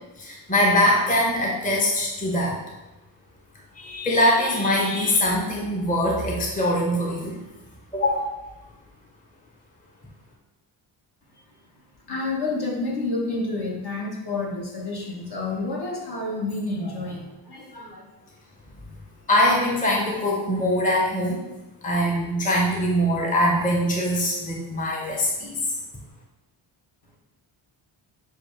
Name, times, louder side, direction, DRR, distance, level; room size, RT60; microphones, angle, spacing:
voice 1, 0.2-2.6 3.7-7.4 7.9-8.2 19.3-21.4 21.8-25.8, left 1 dB, 15° left, -2 dB, 0.9 m, -22 dB
voice 2, 12.0-18.1, left 2 dB, 50° left, -2 dB, 1.2 m, -29 dB
6.2 x 2.3 x 3.2 m, 1.0 s
cardioid pair, 65°, 50 cm